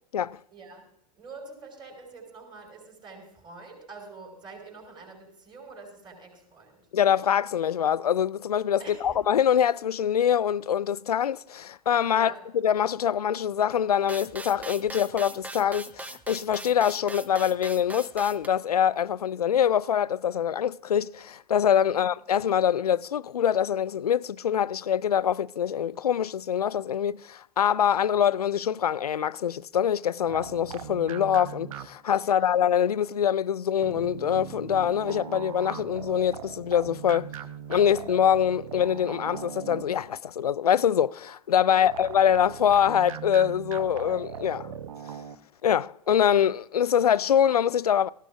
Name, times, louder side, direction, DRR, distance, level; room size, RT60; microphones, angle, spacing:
voice 1, 0.5-0.9 1.1-6.9 8.8-9.2 12.1-12.5 21.9-22.0 32.2-32.6 41.6-41.9, right 3 dB, 25° right, 5.8 m, -46 dB
voice 2, 6.9-12.3 12.6-37.3 37.7-44.7 45.6-48.1, left 9 dB, 75° left, 0.4 m, -24 dB
sound 1, 14.1-18.5, right 2 dB, 10° right, 0.7 m, -40 dB
sound 2, 30.3-32.2 33.8-40.2 41.9-45.4, right 8 dB, 60° right, 0.8 m, -40 dB
18.0 x 15.5 x 2.5 m
figure-of-eight pair, 90°, 20 cm